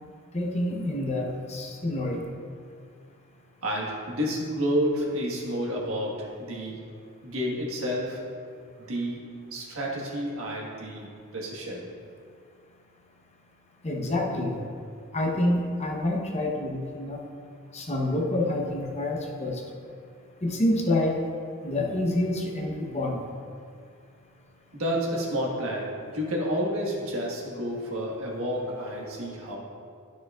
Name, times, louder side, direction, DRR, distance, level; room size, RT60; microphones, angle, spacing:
voice 1, 0.3-2.3 13.8-14.7 15.1-17.2 17.7-19.6 20.4-21.2 21.6-23.3, left 1 dB, 30° left, 0 dB, 0.9 m, -27 dB
voice 2, 3.6-6.9 7.2-8.3 8.8-11.9 24.7-29.6, equal, 75° right, -3 dB, 1.5 m, -30 dB
12.0 x 6.2 x 2.4 m, 2.3 s
head